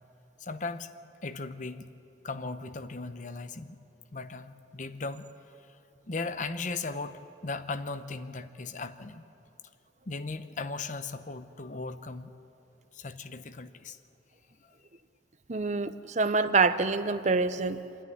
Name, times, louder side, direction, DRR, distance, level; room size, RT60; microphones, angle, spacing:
voice 1, 0.4-0.9 1.2-1.9 2.2-3.8 4.1-5.3 5.7-5.8 6.1-9.2 10.1-12.3 12.9-14.0 14.6-14.7, left 3 dB, 45° left, 11 dB, 0.8 m, -37 dB
voice 2, 15.5-17.8, right 4 dB, 40° right, 11 dB, 0.7 m, -26 dB
28.0 x 10.0 x 9.5 m, 2.8 s
head